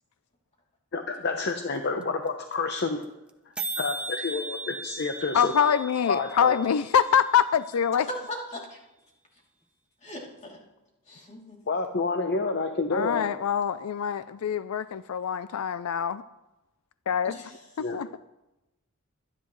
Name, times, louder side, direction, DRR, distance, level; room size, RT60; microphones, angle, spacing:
voice 1, 0.9-3.1 3.8-5.5 6.1-6.6 11.7-13.3 17.8-18.0, left 3 dB, 50° left, 5 dB, 0.8 m, -29 dB
sound 1, 1.5-1.6 1.8-1.9 2.0-2.3 2.5-2.6 2.8-3.0 3.3-3.4 3.6-7.5, right 2 dB, 5° right, 0.7 m, -37 dB
voice 2, 5.3-8.1 12.9-16.2 17.1-17.4 17.9-18.2, left 8 dB, 85° left, 14 dB, 0.4 m, -25 dB
voice 3, 8.0-8.8 10.0-10.6 11.1-11.6 17.2-17.5, left 1 dB, 35° left, -2 dB, 2.9 m, -38 dB
23.5 x 10.0 x 3.1 m, 0.98 s
head